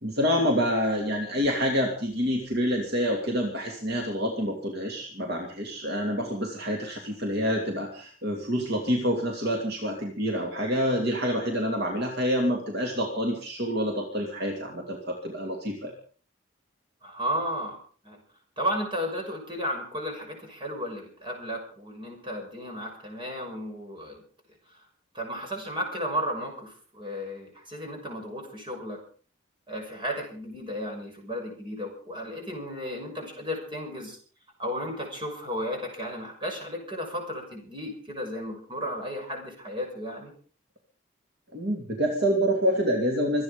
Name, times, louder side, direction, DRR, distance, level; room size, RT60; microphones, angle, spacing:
voice 1, 0.0-15.9 41.5-43.4, equal, 55° right, 1 dB, 2.8 m, -27 dB
voice 2, 17.0-17.8 18.0-18.2 18.6-24.2 25.1-29.0 29.7-34.2 34.6-40.3, equal, 25° right, 1 dB, 6.4 m, -34 dB
25.0 x 9.5 x 5.2 m, 0.43 s
head